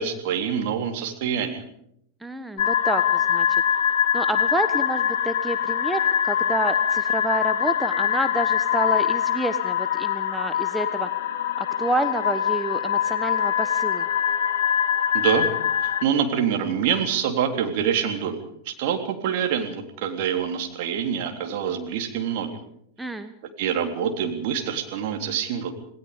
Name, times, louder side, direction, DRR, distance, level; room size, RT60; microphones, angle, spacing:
voice 1, 0.0-1.6 15.1-15.5 15.8-22.5 23.6-25.7, right 8 dB, 50° right, 4 dB, 3.6 m, -26 dB
voice 2, 2.2-3.6 4.1-11.1 11.6-14.1 23.0-23.3, right 1 dB, 5° right, 8 dB, 1.2 m, -29 dB
sound 1, 2.6-16.0, left 9 dB, 55° left, 2.3 m, -23 dB
27.5 x 19.0 x 5.2 m, 0.72 s
figure-of-eight pair, 90°, 0 cm